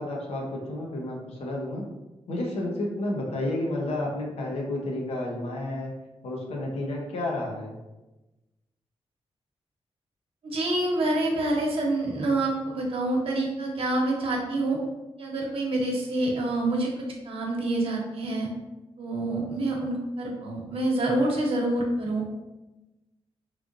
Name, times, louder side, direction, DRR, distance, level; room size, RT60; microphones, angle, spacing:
voice 1, 0.0-1.9 2.3-5.9 6.2-7.8, left 1 dB, 75° left, -1 dB, 0.8 m, -31 dB
voice 2, 10.4-14.8 15.2-18.5 19.0-22.2, right 2 dB, 65° right, -1 dB, 0.9 m, -27 dB
3.7 x 3.2 x 2.6 m, 1.0 s
wide cardioid pair, 150°, 11 cm